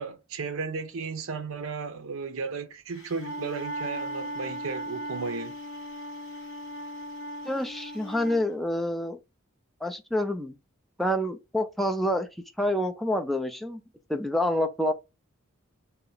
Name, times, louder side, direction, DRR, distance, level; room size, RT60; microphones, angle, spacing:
voice 1, 0.0-5.6, right 4 dB, 70° right, 0.6 m, -34 dB
Wind instrument woodwind instrument, 3.0-8.4, right 1 dB, 60° left, 0.7 m, -37 dB
voice 2, 7.4-9.2 9.8-10.6 11.0-12.3 12.6-13.8 14.1-14.9, left 1 dB, ahead, 0.3 m, -27 dB
2.8 x 2.1 x 3.8 m
head